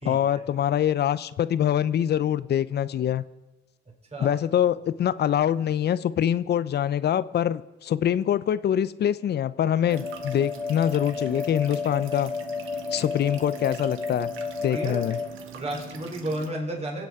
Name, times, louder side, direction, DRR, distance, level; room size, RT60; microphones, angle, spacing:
voice 1, 0.0-3.2 4.2-12.3 12.9-14.3 14.6-15.2, left 10 dB, 55° left, 16 dB, 0.6 m, -24 dB
sound 1, 9.9-15.3, left 5 dB, ahead, 1.2 m, -32 dB
sound 2, 9.9-16.5, right 9 dB, 80° right, 1.3 m, -43 dB
voice 2, 14.7-15.0 15.5-17.1, right 1 dB, 30° right, 1 dB, 3.9 m, -32 dB
24.5 x 8.3 x 4.9 m, 1.1 s
cardioid pair, 90°, 20 cm